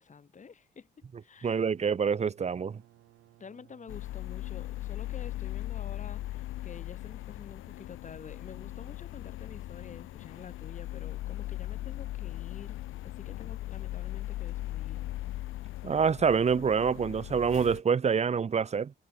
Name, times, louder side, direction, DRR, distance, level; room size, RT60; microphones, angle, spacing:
voice 1, 0.0-1.6 3.4-15.2, left 5 dB, 40° left, 4.1 m, -49 dB
sound 1, 1.3-6.8, right 15 dB, 90° right, 6.0 m, -61 dB
voice 2, 1.4-2.8 15.8-18.9, right 6 dB, 35° right, 0.9 m, -26 dB
sound 2, 3.9-17.8, left 16 dB, 90° left, 2.1 m, -39 dB
cardioid pair, 90°, 20 cm